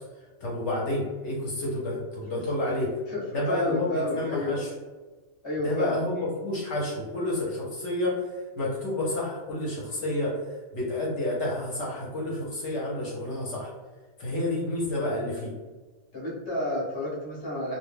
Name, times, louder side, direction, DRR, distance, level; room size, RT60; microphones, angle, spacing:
voice 1, 0.4-2.9 3.3-4.7 5.6-8.2 8.6-10.4 10.7-13.7 14.2-15.5, left 1 dB, 65° left, -4 dB, 0.9 m, -29 dB
voice 2, 3.1-4.6 5.4-6.0 16.1-17.8, left 1 dB, 25° left, -5 dB, 0.7 m, -30 dB
2.3 x 2.1 x 3.2 m, 1.3 s
omnidirectional pair, 1.5 m